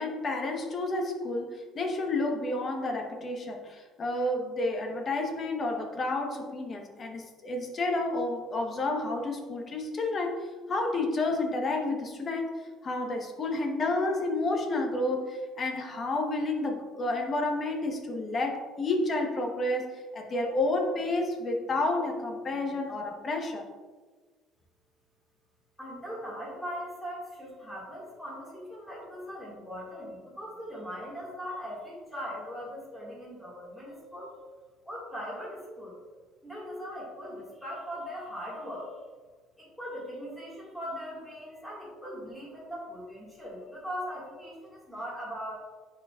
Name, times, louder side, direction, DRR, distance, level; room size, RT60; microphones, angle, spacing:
voice 1, 0.0-23.6, left 2 dB, 30° left, 2 dB, 1.1 m, -30 dB
voice 2, 25.8-34.3 34.8-35.9 36.4-38.9 39.6-45.6, equal, ahead, -6 dB, 1.9 m, -40 dB
10.5 x 4.6 x 2.4 m, 1.4 s
cardioid pair, 140°, 0 cm